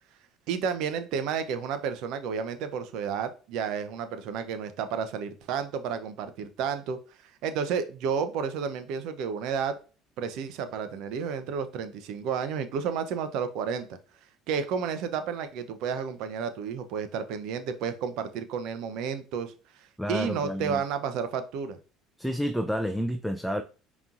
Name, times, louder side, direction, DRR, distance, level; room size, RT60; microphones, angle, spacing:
voice 1, 0.5-7.0 7.4-9.8 10.2-13.9 14.5-19.5 20.1-21.8, right 6 dB, 70° right, 0.7 m, -31 dB
voice 2, 20.0-20.8 22.2-23.6, equal, ahead, 0.4 m, -29 dB
5.2 x 3.0 x 2.5 m
supercardioid pair, 80°, 0 cm